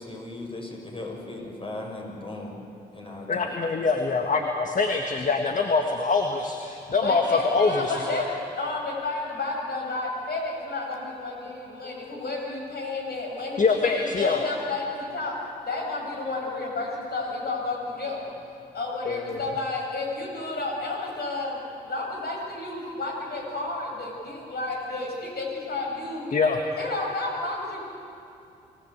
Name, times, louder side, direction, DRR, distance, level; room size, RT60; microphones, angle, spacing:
voice 1, 0.0-2.5 2.9-3.5, left 2 dB, 30° left, 0 dB, 6.8 m, -37 dB
voice 2, 3.3-6.6 6.9-8.2 13.6-14.4 19.0-19.4 26.3-26.6, left 4 dB, 45° left, 4 dB, 1.8 m, -24 dB
voice 3, 7.0-15.3 15.7-18.2 18.7-21.6 21.8-26.3 26.8-27.8, left 2 dB, 60° left, -1 dB, 7.2 m, -31 dB
26.0 x 16.0 x 8.2 m, 2.6 s
supercardioid pair, 50°, 19 cm